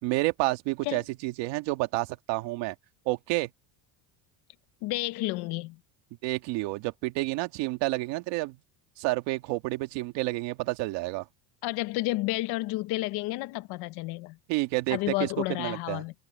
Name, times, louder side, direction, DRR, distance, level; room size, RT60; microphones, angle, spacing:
voice 1, 0.0-2.8 3.1-3.5 6.2-8.6 9.0-11.3 14.5-15.3 15.6-16.0, right 20 dB, 60° right, 1.8 m, -29 dB
voice 2, 4.8-5.8 11.6-14.4 14.9-16.1, left 20 dB, 50° left, 0.7 m, -31 dB
cardioid pair, 170°, 49 cm